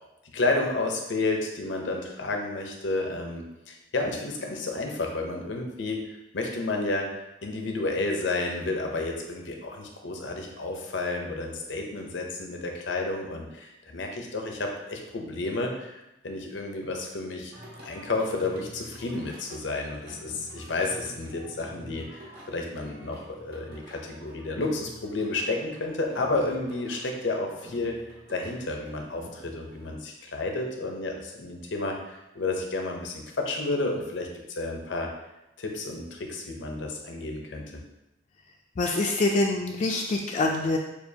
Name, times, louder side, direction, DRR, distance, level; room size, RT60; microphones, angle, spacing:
voice 1, 0.3-7.1 7.4-17.5 17.8-28.0 28.3-35.1 35.6-37.6, left 2 dB, 85° left, 2 dB, 0.7 m, -31 dB
Singing, 17.5-29.9, equal, 60° right, 1.2 m, -47 dB
voice 2, 38.8-40.8, left 2 dB, 40° left, 0 dB, 0.4 m, -25 dB
6.8 x 2.4 x 2.7 m, 0.94 s
head